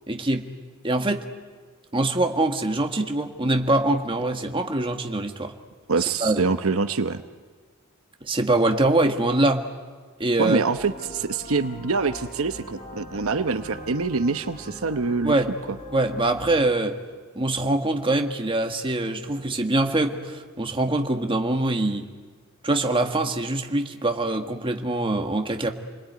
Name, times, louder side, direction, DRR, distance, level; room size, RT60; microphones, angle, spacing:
voice 1, 0.1-0.5 0.8-1.2 1.9-5.5 6.2-6.4 8.2-9.6 10.2-10.6 15.2-15.5 15.9-17.0 17.4-22.1 22.6-25.7, right 2 dB, 25° right, 4 dB, 1.7 m, -23 dB
voice 2, 5.9-7.2 10.4-15.3, right 4 dB, 75° right, 9 dB, 0.9 m, -25 dB
sound 1, 10.7-16.7, equal, 35° left, 6.7 m, -42 dB
29.0 x 21.0 x 9.4 m, 1.5 s
head